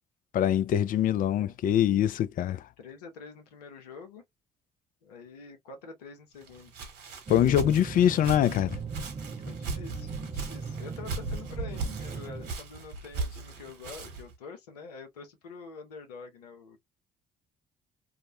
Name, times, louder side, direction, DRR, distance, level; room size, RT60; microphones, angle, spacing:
voice 1, 0.3-2.6 7.3-8.8, left 10 dB, 45° left, 0.4 m, -24 dB
voice 2, 2.8-4.2 5.0-6.7 9.4-16.8, left 4 dB, 85° left, 0.6 m, -46 dB
Walk footsteps, 6.4-14.3, right 4 dB, 65° right, 1.0 m, -38 dB
sound 1, 7.3-12.5, right 4 dB, 25° right, 0.5 m, -38 dB
2.3 x 2.1 x 2.7 m
hypercardioid pair, 50°, 20 cm